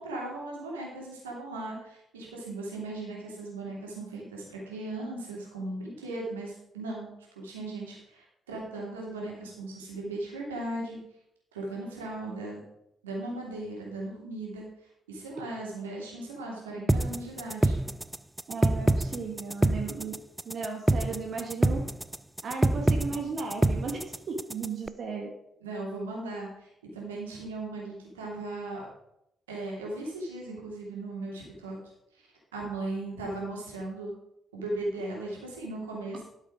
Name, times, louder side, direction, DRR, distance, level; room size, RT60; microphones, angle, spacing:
voice 1, 0.0-7.1 7.3-11.0 11.5-12.6 13.0-14.7 15.1-17.8 25.6-28.9 29.5-31.8 32.1-32.2 32.5-34.1 34.5-36.2, right 2 dB, 80° right, -3 dB, 2.9 m, -37 dB
sound 1, 16.9-24.9, right 1 dB, 10° right, 0.5 m, -26 dB
voice 2, 18.5-20.2 20.4-21.9 22.4-25.3, right 4 dB, 50° right, 1 dB, 1.6 m, -35 dB
12.0 x 6.6 x 5.0 m, 0.80 s
figure-of-eight pair, 40°, 0 cm